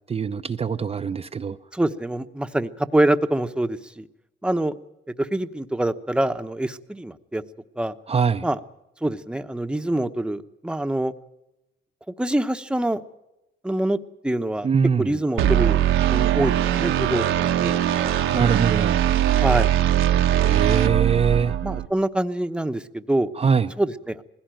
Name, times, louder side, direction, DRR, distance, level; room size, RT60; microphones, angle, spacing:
voice 1, 0.1-1.6 8.1-8.5 14.6-15.1 18.3-19.0 20.4-21.6 23.4-23.7, right 6 dB, 30° right, 0.6 m, -23 dB
voice 2, 1.7-4.1 4.4-4.7 5.2-7.4 7.8-7.9 8.4-8.6 9.0-11.1 12.2-13.0 13.6-14.0 14.2-14.7 15.0-15.8 16.1-17.8 19.3-19.7 21.6-23.3 23.8-24.2, right 1 dB, 5° right, 0.9 m, -25 dB
sound 1, 15.4-21.9, right 11 dB, 85° right, 1.3 m, -21 dB
20.0 x 16.5 x 9.1 m
cardioid pair, 90°, 20 cm